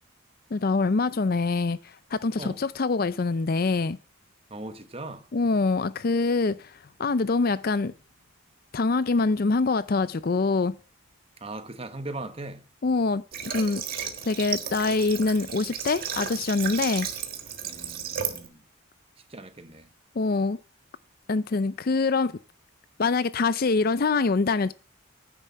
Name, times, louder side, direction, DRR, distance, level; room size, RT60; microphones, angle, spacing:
voice 1, 0.5-1.8 2.1-4.0 5.3-6.7 7.0-7.9 8.7-10.7 12.8-13.8 14.3-17.1 20.2-20.6 21.3-22.4 23.0-24.7, left 3 dB, 45° left, 0.5 m, -24 dB
voice 2, 4.5-5.3 11.4-12.6 17.6-18.7 19.3-19.9, right 2 dB, 25° right, 1.0 m, -39 dB
Water / Water tap faucet, 13.3-18.5, right 8 dB, 45° right, 1.6 m, -34 dB
10.0 x 7.2 x 8.3 m
head